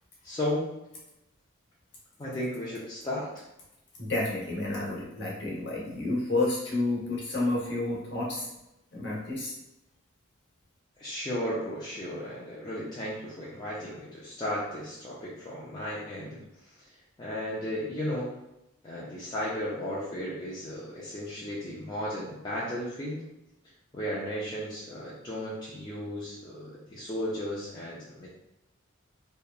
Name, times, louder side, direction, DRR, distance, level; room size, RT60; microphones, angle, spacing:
voice 1, 0.2-0.7 2.2-3.3 11.0-16.7 17.2-18.3 18.8-23.3 23.9-28.3, left 1 dB, 20° left, -7 dB, 0.4 m, -35 dB
voice 2, 4.0-8.5 8.9-9.5, left 2 dB, 55° left, -4 dB, 0.9 m, -30 dB
2.8 x 2.2 x 2.3 m, 0.88 s
head